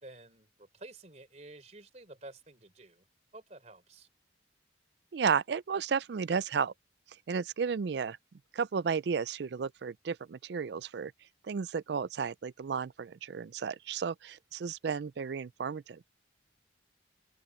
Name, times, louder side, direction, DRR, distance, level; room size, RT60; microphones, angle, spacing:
voice 1, 0.0-3.0 3.3-4.1, right 2 dB, 35° right, 3.5 m, -51 dB
voice 2, 5.1-6.7 7.3-8.2 8.5-11.1 11.4-16.1, right 6 dB, 65° right, 0.4 m, -33 dB
head